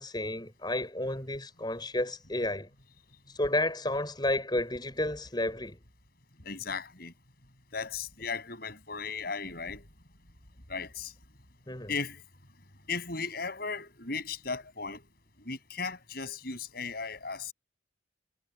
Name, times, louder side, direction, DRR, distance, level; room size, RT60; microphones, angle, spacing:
voice 1, 0.0-2.7 3.3-5.8 11.7-11.9, left 1 dB, 20° left, 5.4 m, -31 dB
voice 2, 6.4-7.1 7.7-9.9 10.7-11.1 11.9-12.2 12.9-15.0 15.4-17.5, left 4 dB, 50° left, 7.8 m, -36 dB
head